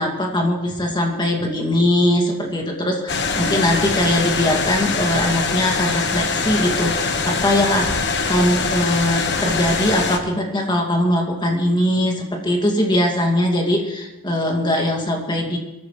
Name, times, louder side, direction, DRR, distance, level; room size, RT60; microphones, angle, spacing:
voice 1, 0.0-7.9 8.3-15.6, left 1 dB, 20° left, 2 dB, 2.4 m, -21 dB
sound 1, 3.1-10.2, left 4 dB, 55° left, 1.4 m, -23 dB
23.5 x 14.0 x 3.3 m, 1.1 s
head